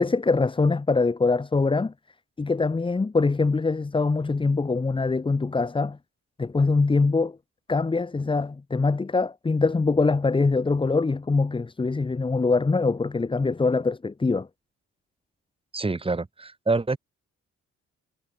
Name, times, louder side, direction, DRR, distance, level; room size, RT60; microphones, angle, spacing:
voice 1, 0.0-1.9 2.4-6.0 6.4-7.3 7.7-14.5, left 3 dB, 15° left, 0.9 m, -23 dB
voice 2, 15.7-17.0, right 3 dB, 20° right, 2.1 m, -26 dB
cardioid pair, 90°, 30 cm